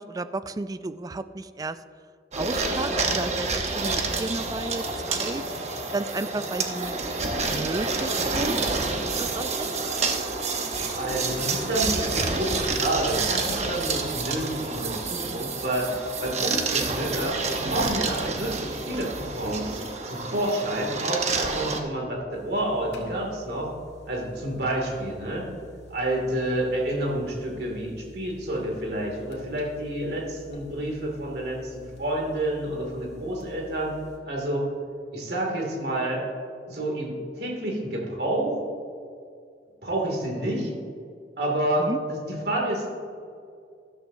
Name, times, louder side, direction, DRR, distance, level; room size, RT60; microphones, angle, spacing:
voice 1, 0.0-1.8 2.3-5.4 5.9-7.0 7.5-8.6 9.0-9.7 41.8-42.0, right 2 dB, 20° right, 13 dB, 0.3 m, -33 dB
sound 1, 2.3-21.8, right 3 dB, 40° right, 1.0 m, -28 dB
voice 2, 10.9-15.9 16.2-17.4 17.7-23.7 24.1-25.5 25.9-33.9 34.3-34.7 35.1-36.2 36.7-38.6 39.8-40.7 41.4-42.9, right 1 dB, 65° right, -1 dB, 2.4 m, -29 dB
sound 2, 22.3-34.2, left 1 dB, 70° left, 1.9 m, -48 dB
12.5 x 12.5 x 2.7 m, 2.3 s
head